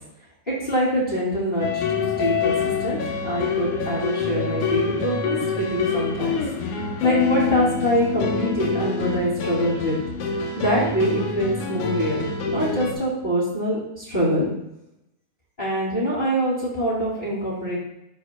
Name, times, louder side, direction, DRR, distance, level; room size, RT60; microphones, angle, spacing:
voice 1, 0.5-6.3 7.0-10.0 10.6-14.5 15.6-17.8, equal, 20° left, -9 dB, 2.3 m, -24 dB
sound 1, 1.6-12.9, left 5 dB, 80° left, 2.4 m, -26 dB
13.0 x 4.7 x 2.2 m, 0.85 s
omnidirectional pair, 3.4 m